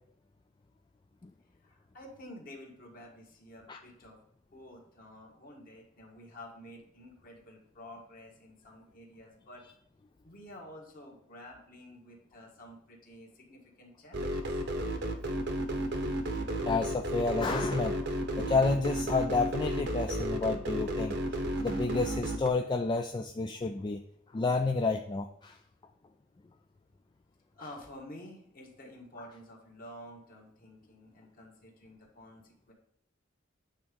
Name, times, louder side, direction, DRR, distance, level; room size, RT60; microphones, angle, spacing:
voice 1, 1.6-4.2 4.5-9.6 10.2-14.6 27.6-32.7, left 1 dB, 45° left, -1 dB, 1.8 m, -50 dB
sound 1, 14.1-22.5, right 1 dB, 60° right, 0.9 m, -32 dB
voice 2, 16.6-24.0 24.3-25.6, left 3 dB, 25° left, 5 dB, 0.3 m, -30 dB
8.7 x 3.7 x 5.2 m, 0.69 s
head